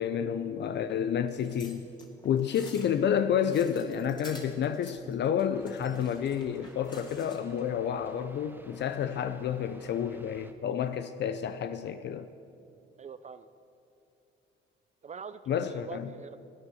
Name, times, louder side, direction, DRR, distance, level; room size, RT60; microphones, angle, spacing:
voice 1, 0.0-1.9 2.2-12.3 15.5-16.1, left 8 dB, 60° left, 11 dB, 0.6 m, -30 dB
sound 1, 1.3-7.6 8.0-8.2, left 2 dB, 20° left, 2.5 m, -51 dB
sound 2, 5.5-10.5, right 1 dB, 10° right, 1.0 m, -55 dB
voice 2, 13.0-13.5 15.0-16.5, right 6 dB, 35° right, 12 dB, 0.5 m, -44 dB
16.0 x 9.6 x 7.0 m, 2.6 s
cardioid pair, 90°, 20 cm